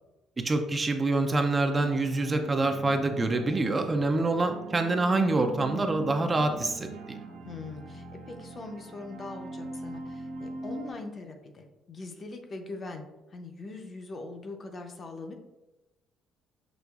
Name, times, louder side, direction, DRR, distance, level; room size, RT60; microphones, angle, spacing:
voice 1, 0.4-7.2, right 2 dB, 20° right, 5 dB, 0.3 m, -26 dB
sound 1, 1.8-10.9, right 3 dB, 85° right, 0.5 m, -41 dB
voice 2, 7.4-15.3, left 3 dB, 35° left, 5 dB, 0.5 m, -41 dB
6.1 x 2.9 x 2.3 m, 1.0 s
cardioid pair, 125°, 0 cm